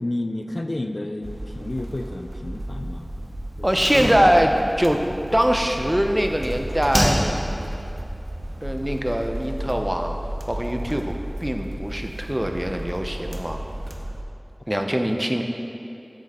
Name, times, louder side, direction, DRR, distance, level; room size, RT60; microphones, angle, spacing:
voice 1, 0.0-3.1 3.6-3.9 5.0-5.2 14.7-15.1, left 1 dB, 75° left, 6 dB, 0.4 m, -31 dB
sound 1, 1.2-14.2, right 1 dB, 75° right, 0.7 m, -33 dB
voice 2, 3.6-5.0 5.3-7.3 8.6-10.2 10.5-11.1 11.4-13.6 14.7-15.4, equal, 20° right, 4 dB, 0.6 m, -22 dB
Slam, 3.7-6.4 6.9-7.7 7.9-8.0, equal, 45° right, 1.7 m, -27 dB
7.7 x 7.4 x 4.3 m, 2.7 s
wide cardioid pair, 40°, 0 cm